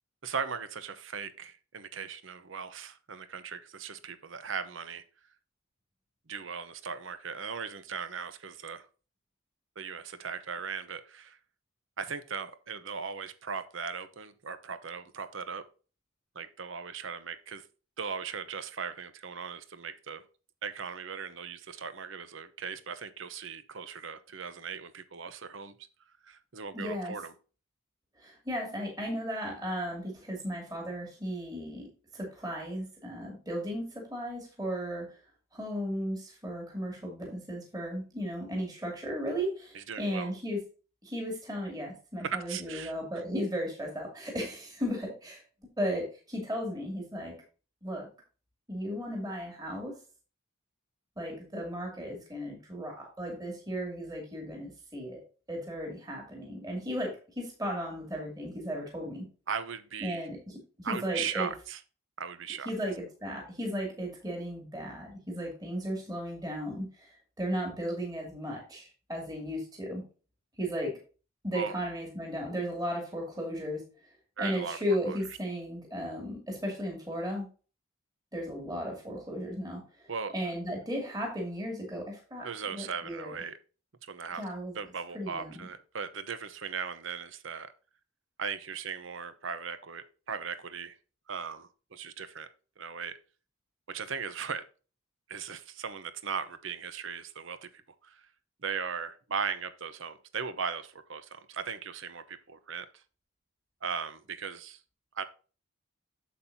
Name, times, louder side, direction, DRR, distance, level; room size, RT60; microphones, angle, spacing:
voice 1, 0.2-5.0 6.3-8.9 9.8-11.4 12.0-15.6 16.3-17.7 18.0-20.2 20.6-25.7 26.2-27.3 39.7-40.3 42.2-42.9 59.5-60.3 60.8-61.8 62.2-62.7 71.5-71.7 74.4-74.8 75.1-75.2 80.1-80.3 82.4-83.6 84.0-84.4 84.7-87.7 88.4-91.0 91.3-92.5 92.8-93.2 93.9-94.7 95.3-98.3 98.6-103.0 103.8-104.8 105.1-105.2, right 6 dB, 65° right, 12 dB, 0.8 m, -38 dB
voice 2, 26.7-27.1 28.2-31.8 32.1-35.2 35.5-40.6 41.0-45.4 45.8-47.4 47.8-48.1 48.7-50.0 51.2-55.2 55.5-59.2 60.0-61.5 62.7-70.0 70.6-71.0 71.4-73.8 74.4-77.5 78.3-80.1 80.3-83.4 84.4-84.7 85.1-85.7, equal, 20° right, 0 dB, 2.4 m, -35 dB
8.4 x 7.4 x 2.7 m, 0.36 s
head